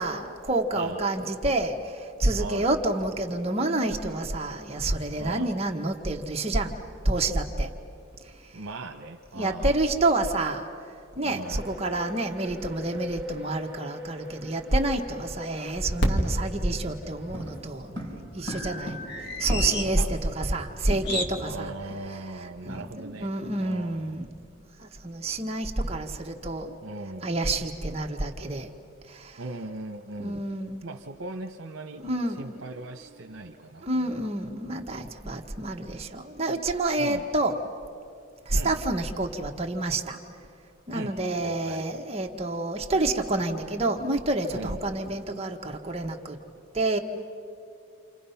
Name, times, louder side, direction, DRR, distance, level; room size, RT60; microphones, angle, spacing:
voice 1, 0.0-6.7 7.0-7.7 9.3-10.7 11.1-17.9 18.3-19.0 19.4-21.7 22.1-24.3 24.8-26.7 27.2-28.7 29.1-29.4 30.2-30.8 32.0-32.6 33.8-37.6 38.5-40.2 40.9-46.4 46.7-47.0, right 2 dB, 30° right, 3 dB, 1.3 m, -28 dB
voice 2, 2.4-2.7 5.2-5.6 8.5-9.8 11.2-11.6 19.8-20.4 21.4-24.2 26.3-26.4 26.8-27.3 29.4-30.5 30.8-32.0 32.4-34.3 37.0-37.3 38.5-38.8 40.9-41.8 44.5-44.8, right 2 dB, 75° right, 3 dB, 1.0 m, -39 dB
sound 1, 11.4-17.6, left 2 dB, 5° right, 2.3 m, -44 dB
sound 2, 16.0-21.3, equal, 55° left, 2.0 m, -32 dB
sound 3, 17.3-20.0 20.3-20.4 20.6-21.6 21.9-22.1 22.5-22.7, equal, 25° left, 4.9 m, -39 dB
29.5 x 28.0 x 5.7 m, 2.5 s
head